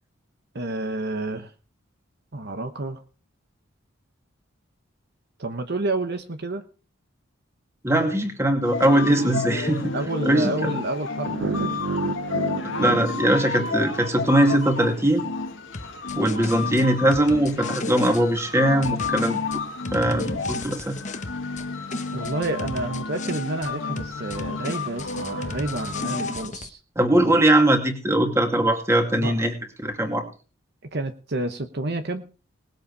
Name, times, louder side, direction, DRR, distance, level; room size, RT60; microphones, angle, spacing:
voice 1, 0.5-1.5 2.3-3.0 5.4-6.6 9.9-11.7 22.1-26.8 29.2-29.5 30.8-32.3, right 2 dB, 55° right, 7 dB, 1.1 m, -29 dB
voice 2, 7.8-9.9 10.3-10.8 12.8-15.2 16.2-19.4 19.9-21.0 27.0-29.5 29.8-30.3, right 1 dB, 15° right, 4 dB, 2.5 m, -21 dB
sound 1, 8.6-26.5, left 4 dB, 70° left, 2.0 m, -31 dB
sound 2, 11.2-14.3, right 4 dB, 70° right, 0.7 m, -31 dB
sound 3, 15.7-18.2 18.8-21.7 21.9-23.7 24.0-26.7, left 3 dB, 35° left, 1.1 m, -35 dB
19.5 x 8.1 x 4.8 m, 0.35 s
head